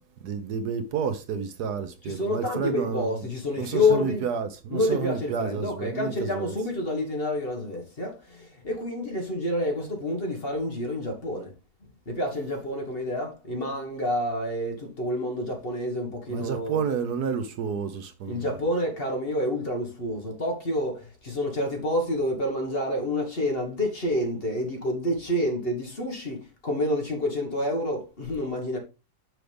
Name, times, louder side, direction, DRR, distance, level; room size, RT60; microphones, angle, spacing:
voice 1, 0.2-3.3 3.6-6.6 16.3-18.5, right 6 dB, 70° right, 1.3 m, -30 dB
voice 2, 2.0-4.3 4.7-11.5 12.0-16.8 18.3-28.8, left 1 dB, 35° left, 1.7 m, -28 dB
6.3 x 6.3 x 3.4 m
omnidirectional pair, 1.9 m